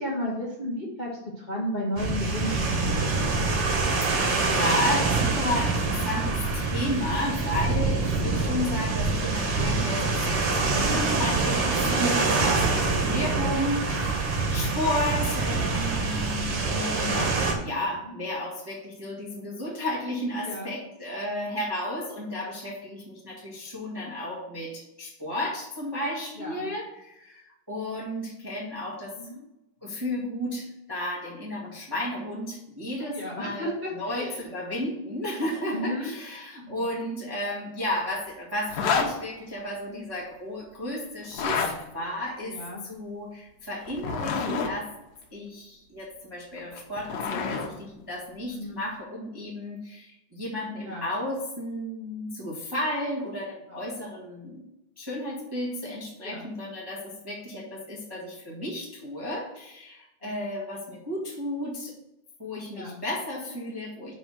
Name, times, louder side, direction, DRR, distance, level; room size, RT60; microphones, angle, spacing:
voice 1, 0.0-3.0 12.3-12.5 18.1-18.2 20.4-20.7 26.4-26.7 29.2-29.4 33.0-34.4 35.7-36.1 36.6-36.8 39.9-40.0 42.4-42.8 48.5-48.8 50.8-51.1 56.2-56.4 60.2-60.3 62.7-63.0, left 1 dB, 30° left, -4 dB, 0.8 m, -33 dB
sound 1, 2.0-17.5, right 3 dB, 55° right, 2.2 m, -25 dB
voice 2, 4.0-29.1 29.8-33.7 33.9-42.6 42.8-44.9 45.3-54.6 55.0-61.9 62.4-64.1, left 1 dB, 15° right, -5 dB, 0.9 m, -33 dB
sound 2, 38.7-39.1 41.2-41.7 43.9-44.7 46.6-47.7, left 5 dB, 85° left, 2.5 m, -28 dB
5.7 x 5.4 x 6.2 m, 0.90 s
omnidirectional pair, 3.6 m